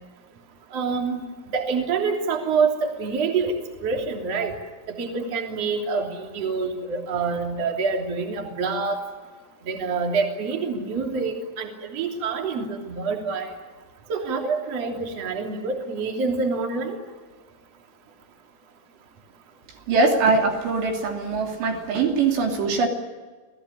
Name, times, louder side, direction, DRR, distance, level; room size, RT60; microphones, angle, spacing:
voice 1, 0.7-1.2 1.5-3.6 3.8-4.5 4.9-9.0 9.7-13.5 14.1-17.0, right 4 dB, 35° right, 2 dB, 3.7 m, -26 dB
voice 2, 19.9-22.9, right 4 dB, 65° right, 2 dB, 5.0 m, -22 dB
29.0 x 18.5 x 10.0 m, 1.4 s
omnidirectional pair, 5.4 m